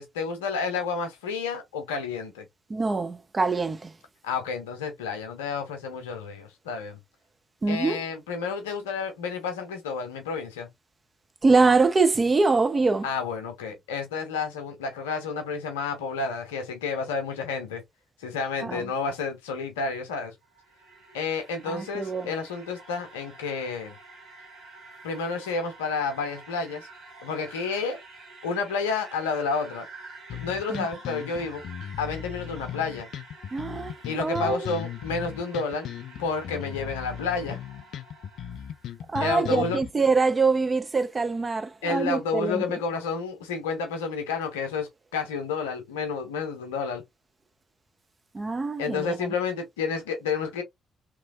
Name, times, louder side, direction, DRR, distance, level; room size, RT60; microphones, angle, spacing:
voice 1, 0.0-2.5 4.2-7.0 7.7-10.7 13.0-17.8 18.2-20.3 21.1-23.9 25.0-26.9 27.2-28.0 28.4-29.9 30.4-31.6 32.0-33.1 34.1-35.9 36.2-37.6 39.2-39.8 41.8-47.0 48.8-50.6, left 5 dB, 80° left, 0.7 m, -30 dB
voice 2, 2.7-3.9 7.6-8.0 11.4-13.1 18.6-18.9 21.7-22.3 30.7-30.9 33.5-34.7 39.1-42.8 48.3-49.3, right 4 dB, 30° right, 0.8 m, -24 dB
sound 1, 20.3-39.0, right 3 dB, 75° right, 1.8 m, -48 dB
sound 2, 30.3-39.9, left 9 dB, 60° left, 0.3 m, -37 dB
3.1 x 3.0 x 2.3 m
figure-of-eight pair, 40°, 0 cm